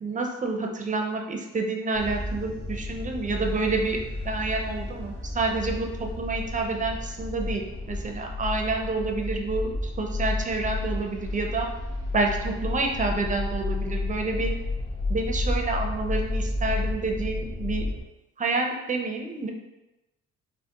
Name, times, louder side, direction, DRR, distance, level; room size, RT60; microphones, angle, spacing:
voice 1, 0.0-4.0 4.2-11.7 12.1-14.5 15.1-17.8 18.4-19.5, right 3 dB, 25° right, 3 dB, 0.4 m, -28 dB
sound 1, 1.9-18.0, left 2 dB, 75° left, 1.2 m, -31 dB
3.4 x 2.1 x 2.8 m, 1.0 s
cardioid pair, 90°, 30 cm